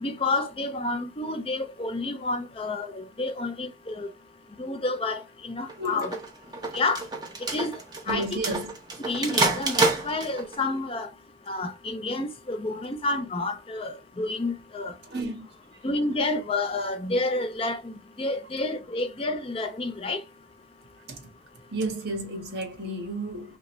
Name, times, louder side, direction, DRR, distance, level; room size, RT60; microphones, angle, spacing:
voice 1, 0.0-4.1 4.6-6.1 6.7-7.0 7.4-7.8 8.1-8.2 9.0-11.1 11.5-15.0 15.8-20.2, left 2 dB, 30° left, 0.5 m, -29 dB
sound 1, 5.7-10.6, right 3 dB, 20° right, 0.9 m, -28 dB
voice 2, 5.8-6.1 8.1-8.7 15.0-15.5 21.1-21.2 21.7-23.6, right 2 dB, 55° right, 1.3 m, -32 dB
3.9 x 3.4 x 3.0 m
head